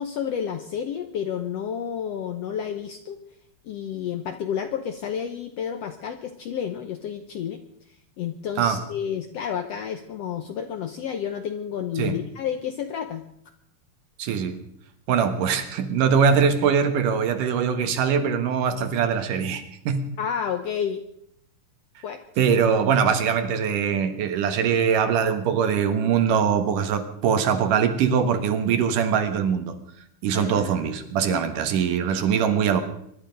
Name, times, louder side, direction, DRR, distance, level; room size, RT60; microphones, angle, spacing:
voice 1, 0.0-3.2 3.6-7.6 8.2-13.2 20.2-21.0 22.0-22.5 30.3-30.9 31.3-31.4, left 8 dB, 75° left, 7 dB, 1.5 m, -30 dB
voice 2, 14.2-14.6 15.1-20.1 22.4-29.8 30.2-32.8, right 7 dB, 75° right, 8 dB, 2.9 m, -22 dB
23.5 x 11.5 x 5.2 m, 0.72 s
omnidirectional pair, 3.8 m